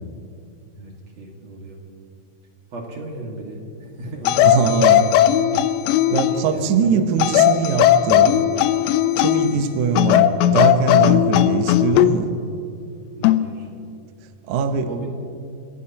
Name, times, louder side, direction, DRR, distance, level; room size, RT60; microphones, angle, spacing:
voice 1, 0.8-1.8 2.7-4.8 6.0-7.0 9.5-9.6 13.1-14.0 14.8-15.1, right 2 dB, 50° right, 0 dB, 2.5 m, -34 dB
sound 1, 4.2-6.5 7.2-9.6 10.0-12.2 13.2-13.5, left 12 dB, 85° left, 2.8 m, -17 dB
voice 2, 4.4-5.0 6.1-8.4 9.2-12.3 14.5-15.1, right 6 dB, 85° right, 7 dB, 1.7 m, -22 dB
29.0 x 16.0 x 2.9 m, 2.5 s
omnidirectional pair, 5.0 m